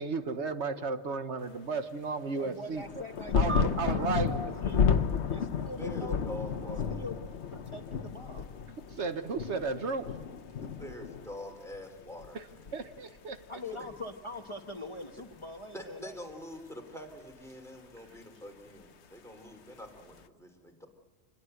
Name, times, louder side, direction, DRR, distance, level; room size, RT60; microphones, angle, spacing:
voice 1, 0.0-3.0 3.3-4.4 8.9-10.1 12.3-12.5 12.7-13.4, right 4 dB, 85° right, 9 dB, 1.6 m, -34 dB
voice 2, 2.3-4.9 5.3-6.2 6.6-7.2 7.5-8.4 13.5-16.4, left 2 dB, 25° left, 5 dB, 1.3 m, -43 dB
sound 1, 2.8-11.8 12.1-13.0 13.9-14.0, left 6 dB, 80° left, 1.2 m, -32 dB
sound 2, 3.5-6.2, right 3 dB, 15° right, 0.6 m, -42 dB
voice 3, 5.6-7.2 10.6-12.4 15.7-20.9, equal, ahead, 3 dB, 3.3 m, -45 dB
26.5 x 21.0 x 7.9 m, 1.4 s
omnidirectional pair, 1.1 m